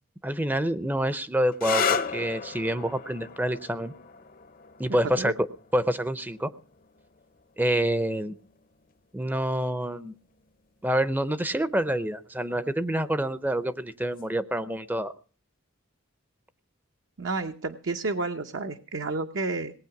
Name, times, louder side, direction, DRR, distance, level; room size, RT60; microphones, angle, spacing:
voice 1, 0.2-3.9 4.8-5.3 5.7-6.5 7.6-8.3 9.1-10.1 10.8-15.1, right 1 dB, 10° right, 14 dB, 0.6 m, -27 dB
sound 1, 1.5-9.0 10.0-10.5 14.0-14.4, left 6 dB, 45° left, 0.7 m, -35 dB
voice 2, 17.2-19.7, right 3 dB, 65° right, 6 dB, 0.8 m, -30 dB
19.0 x 8.7 x 5.9 m, 0.41 s
head